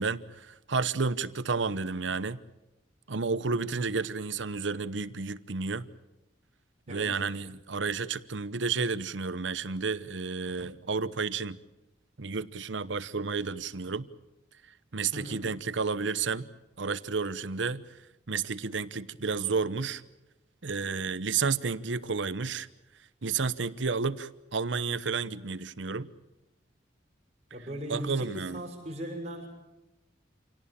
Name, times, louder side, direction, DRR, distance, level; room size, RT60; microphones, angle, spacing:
voice 1, 0.0-2.4 3.1-5.9 6.9-11.6 12.2-14.1 14.9-16.5 16.8-17.8 18.3-20.0 20.6-22.7 23.2-26.1 27.9-28.6, right 4 dB, 85° right, 0.9 m, -31 dB
voice 2, 15.1-15.4 27.5-29.5, equal, 35° right, 6.6 m, -38 dB
27.5 x 18.0 x 8.8 m
head